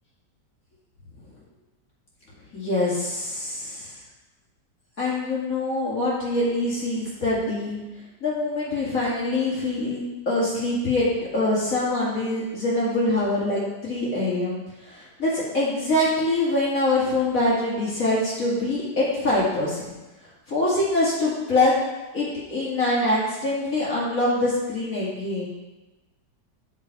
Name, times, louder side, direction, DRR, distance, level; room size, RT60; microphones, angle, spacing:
voice 1, 2.5-3.9 5.0-7.8 8.2-11.1 11.3-14.6 14.9-19.9 20.5-21.8 22.1-25.5, left 2 dB, 50° left, -7 dB, 2.7 m, -24 dB
8.2 x 6.5 x 4.8 m, 1.1 s
omnidirectional pair, 1.8 m